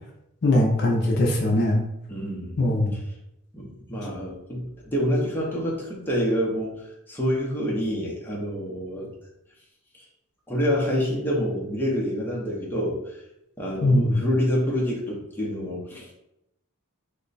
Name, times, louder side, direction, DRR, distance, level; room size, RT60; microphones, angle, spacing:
voice 1, 0.4-1.8 2.6-2.9 13.8-14.2, left 1 dB, 50° left, 0 dB, 0.5 m, -20 dB
voice 2, 2.1-2.6 3.5-6.7 7.1-9.1 10.5-13.0 13.6-16.1, equal, 10° left, -4 dB, 0.7 m, -27 dB
3.1 x 2.2 x 3.9 m, 0.84 s
head